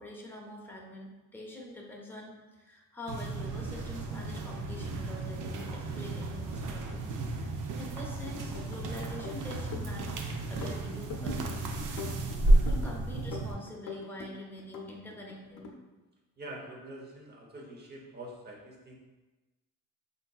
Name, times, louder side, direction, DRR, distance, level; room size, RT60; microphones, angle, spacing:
voice 1, 0.0-7.0 7.3-11.6 12.7-15.7, left 1 dB, 5° left, -3 dB, 0.6 m, -45 dB
sound 1, 3.1-13.5, right 2 dB, 65° right, 0.5 m, -32 dB
sound 2, 8.2-8.8 9.1-10.2 10.4-11.5 11.8-12.9 13.3-14.3 14.6-15.7, left 4 dB, 80° left, 0.6 m, -42 dB
voice 2, 16.4-19.0, right 1 dB, 30° right, -1 dB, 0.7 m, -45 dB
5.0 x 2.6 x 2.3 m, 1.1 s
cardioid pair, 135°, 34 cm